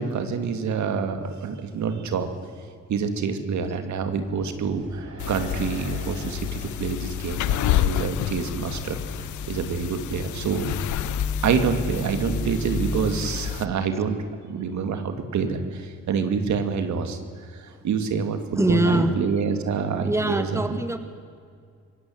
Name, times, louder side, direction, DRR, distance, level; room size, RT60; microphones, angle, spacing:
voice 1, 0.0-2.3 2.9-9.0 9.5-11.0 11.4-14.2 14.5-17.2 17.5-20.8, right 6 dB, 70° right, 8 dB, 2.3 m, -27 dB
sound 1, 4.0-8.3, right 2 dB, 50° right, 5.4 m, -44 dB
sound 2, 5.2-13.7, left 12 dB, 75° left, 0.7 m, -29 dB
Microwave oven, 8.0-13.2, left 1 dB, 40° left, 3.9 m, -34 dB
voice 2, 18.5-19.2 20.0-21.0, right 1 dB, 10° right, 8 dB, 1.8 m, -23 dB
25.5 x 16.5 x 7.8 m, 2.2 s
cardioid pair, 90°, 30 cm